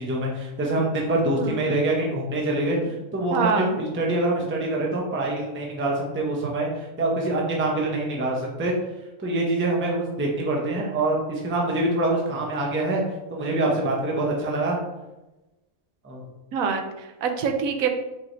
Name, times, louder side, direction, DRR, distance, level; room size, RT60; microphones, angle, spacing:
voice 1, 0.0-8.7 9.2-13.0 13.3-14.8 16.0-16.2, right 2 dB, 15° right, -2 dB, 0.4 m, -25 dB
voice 2, 1.3-1.6 3.3-3.8 16.5-17.9, right 5 dB, 80° right, 5 dB, 1.0 m, -25 dB
4.8 x 3.1 x 2.6 m, 1.0 s
omnidirectional pair, 1.4 m